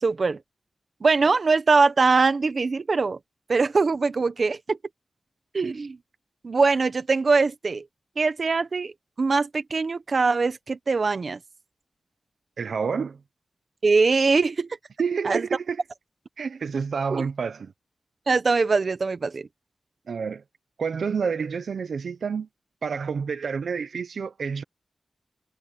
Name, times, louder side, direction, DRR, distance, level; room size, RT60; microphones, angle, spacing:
voice 1, 0.0-0.4 1.0-3.2 3.5-4.8 5.5-6.0 6.4-7.8 8.2-8.9 9.2-11.4 13.8-14.7 15.2-15.5 17.1-17.2 18.3-19.5, right 4 dB, 50° right, 1.4 m, -22 dB
voice 2, 12.6-13.2 15.0-15.8 16.4-17.7 20.1-20.4 20.8-22.5 22.8-24.6, right 5 dB, 80° right, 0.9 m, -28 dB
wide cardioid pair, 105°, 0 cm